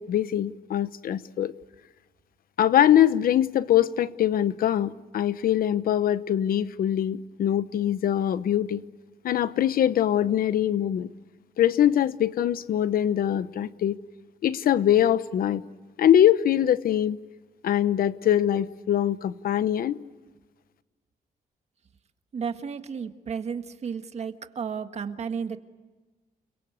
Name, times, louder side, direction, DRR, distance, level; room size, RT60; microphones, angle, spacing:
voice 1, 0.0-1.5 2.6-8.8 9.2-11.1 11.6-14.0 14.4-15.6 16.0-17.2 17.6-20.0, left 10 dB, 75° left, 14 dB, 1.0 m, -23 dB
voice 2, 22.3-25.6, right 6 dB, 45° right, 8 dB, 1.6 m, -33 dB
29.5 x 22.5 x 8.2 m, 1.2 s
wide cardioid pair, 155°, 15 cm